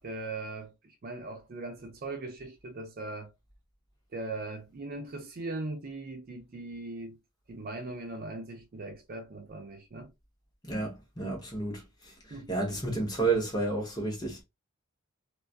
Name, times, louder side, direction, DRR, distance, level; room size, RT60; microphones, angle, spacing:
voice 1, 0.0-3.3 4.1-7.2 7.5-10.1 12.3-12.5, right 2 dB, 40° right, 0.4 m, -39 dB
voice 2, 10.6-14.4, right 3 dB, 20° left, 0.7 m, -31 dB
2.3 x 2.2 x 2.4 m
head